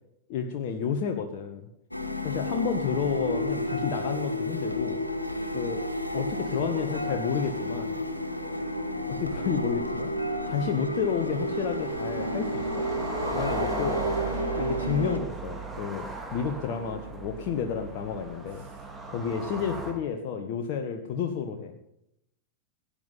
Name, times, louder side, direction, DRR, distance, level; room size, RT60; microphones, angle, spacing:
voice 1, 0.3-1.7 2.2-5.0 5.5-5.8 6.1-8.0 9.1-10.1 10.4-12.8 13.3-14.0 14.5-18.6 19.1-21.8, left 7 dB, 45° left, 4 dB, 1.4 m, -31 dB
sound 1, 1.9-15.2, equal, 85° left, 1.4 m, -31 dB
voice 2, 6.3-7.2 8.3-8.9 10.4-10.6 18.5-18.9 21.0-21.1, right 3 dB, 45° right, -1 dB, 5.3 m, -48 dB
sound 2, 8.1-19.9, right 3 dB, 10° right, 3.0 m, -38 dB
17.0 x 10.0 x 5.7 m, 0.81 s
figure-of-eight pair, 90°, 0 cm